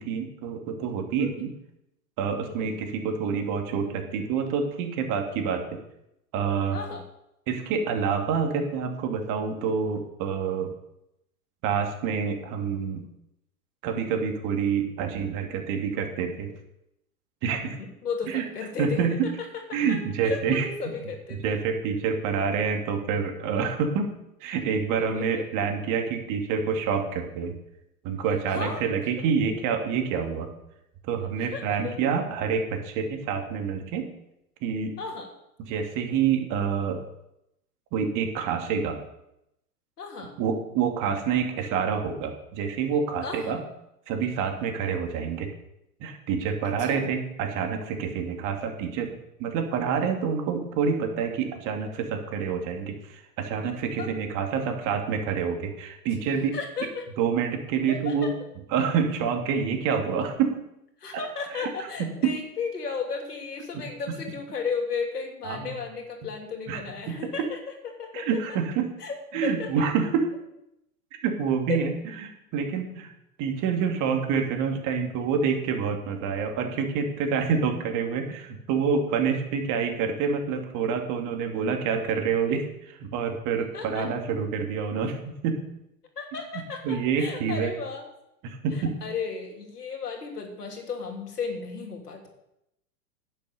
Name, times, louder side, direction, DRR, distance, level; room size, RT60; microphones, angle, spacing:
voice 1, 0.0-1.5 2.2-5.8 6.3-6.8 7.5-10.7 11.6-13.1 13.8-16.5 17.4-17.8 18.3-18.5 18.8-19.3 19.7-20.7 21.4-24.1 24.4-27.5 28.0-30.5 31.1-34.1 34.6-34.9 35.7-37.0 37.9-39.0 40.4-43.6 44.1-45.5 46.0-56.5 57.2-58.3 58.7-60.5 61.1-61.2 61.6-61.7 62.0-62.3 64.1-64.2 65.4-65.7 66.7-67.3 68.1-68.9 69.3-70.3 71.2-73.1 73.4-85.6 86.8-87.7 88.4-89.0, right 6 dB, 40° right, 4 dB, 2.6 m, -27 dB
voice 2, 6.7-7.0 17.8-20.0 20.2-21.6 25.1-25.4 28.5-28.8 31.4-31.9 35.0-35.3 40.0-40.3 43.2-43.6 46.6-47.0 54.0-54.1 56.5-57.1 57.9-58.3 61.0-67.6 68.0-68.6 69.0-69.2 69.4-69.8 71.7-71.8 83.7-84.1 86.2-88.1 88.7-92.3, left 5 dB, 85° left, 3 dB, 3.0 m, -34 dB
10.5 x 9.4 x 6.6 m, 0.82 s
hypercardioid pair, 105°, 46 cm